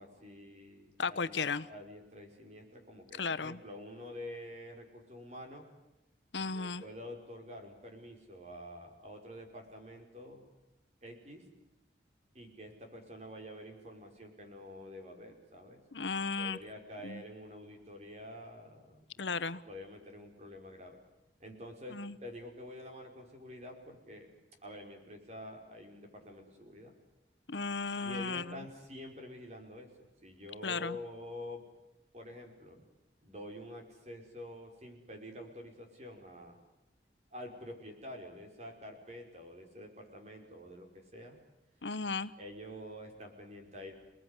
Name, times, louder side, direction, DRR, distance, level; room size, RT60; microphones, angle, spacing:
voice 1, 0.0-5.7 6.4-10.4 11.0-11.5 12.3-15.8 16.4-19.4 19.7-21.0 21.4-24.3 24.6-26.9 28.0-31.6 32.1-32.9 33.2-36.6 37.3-41.4 42.4-43.9, left 1 dB, 40° right, 4 dB, 5.2 m, -48 dB
voice 2, 1.0-1.7 3.2-3.6 6.3-6.8 15.9-16.6 17.0-17.2 19.2-19.6 21.9-22.1 27.5-28.6 30.6-31.0 41.8-42.3, left 4 dB, 85° left, 14 dB, 1.0 m, -35 dB
30.0 x 19.5 x 9.9 m, 0.95 s
head